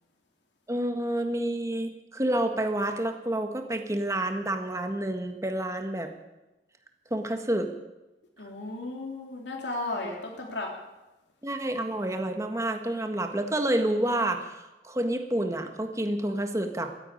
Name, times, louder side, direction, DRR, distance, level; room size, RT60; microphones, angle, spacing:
voice 1, 0.7-6.1 7.1-7.7 11.4-16.9, right 1 dB, 15° right, 5 dB, 1.5 m, -29 dB
voice 2, 8.4-10.7, left 2 dB, 90° left, 0 dB, 2.9 m, -34 dB
13.5 x 10.5 x 9.6 m, 1.0 s
head